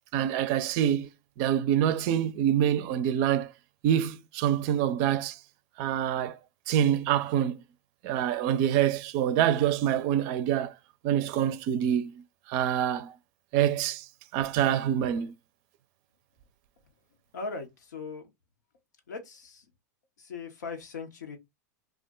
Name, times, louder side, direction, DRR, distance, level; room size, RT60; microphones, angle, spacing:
voice 1, 0.1-1.1 1.4-3.5 3.8-5.4 5.8-6.4 6.7-7.6 8.0-10.7 11.0-12.1 12.5-13.1 13.5-14.1 14.3-15.3, right 10 dB, 50° right, 0.5 m, -26 dB
voice 2, 17.3-18.3 19.1-19.7 20.2-21.4, left 4 dB, 85° left, 0.9 m, -39 dB
2.4 x 2.2 x 3.7 m
hypercardioid pair, 110°, 9 cm